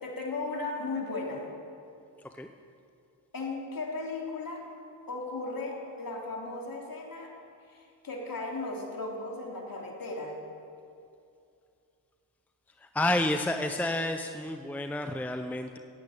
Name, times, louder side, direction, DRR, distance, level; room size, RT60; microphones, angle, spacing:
voice 1, 0.0-1.5 3.3-4.7 5.1-7.3 7.7-10.4, left 3 dB, 50° left, -1 dB, 3.2 m, -36 dB
voice 2, 12.8-15.8, left 1 dB, 5° left, 6 dB, 0.7 m, -30 dB
14.5 x 8.6 x 8.9 m, 2.5 s
cardioid pair, 70°, 45 cm